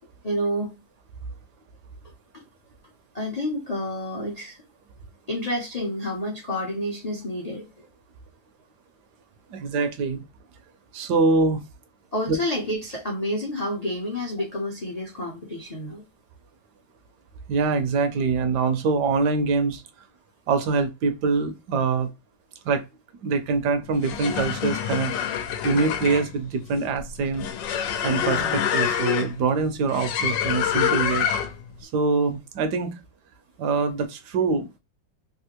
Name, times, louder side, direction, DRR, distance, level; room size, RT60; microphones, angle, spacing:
voice 1, 0.2-0.8 2.3-2.5 3.1-4.6 5.3-7.9 12.1-16.1 25.2-25.3 28.1-28.5, left 1 dB, 50° left, 0.4 m, -29 dB
voice 2, 9.5-10.2 10.9-11.6 12.3-12.4 17.5-19.8 20.5-22.1 22.6-22.8 23.2-25.2 25.6-27.5 28.0-31.3 31.8-33.0 33.6-34.8, right 4 dB, 75° right, 1.2 m, -24 dB
sound 1, 23.9-31.7, left 9 dB, 85° left, 1.3 m, -27 dB
3.4 x 2.4 x 2.9 m
omnidirectional pair, 1.9 m